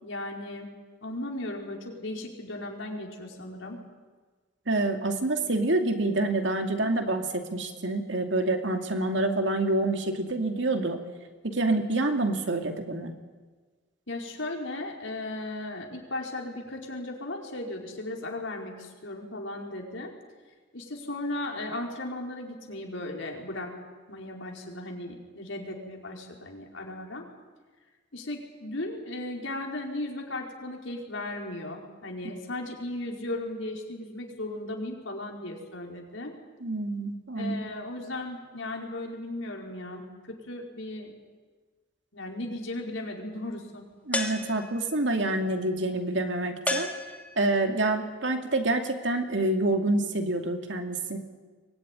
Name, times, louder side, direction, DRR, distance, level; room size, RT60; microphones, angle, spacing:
voice 1, 0.0-0.7 1.0-3.8 14.1-20.1 20.7-23.7 24.1-27.2 28.1-36.3 37.3-41.1 42.1-43.8, left 1 dB, 85° left, 0 dB, 4.7 m, -36 dB
voice 2, 4.7-11.0 11.5-13.1 36.6-37.6 44.1-46.9 47.4-51.2, right 2 dB, 70° right, 5 dB, 2.5 m, -27 dB
sound 1, 44.1-45.0 46.7-47.6, left 2 dB, 10° left, 2.4 m, -32 dB
24.0 x 19.0 x 9.9 m, 1.4 s
head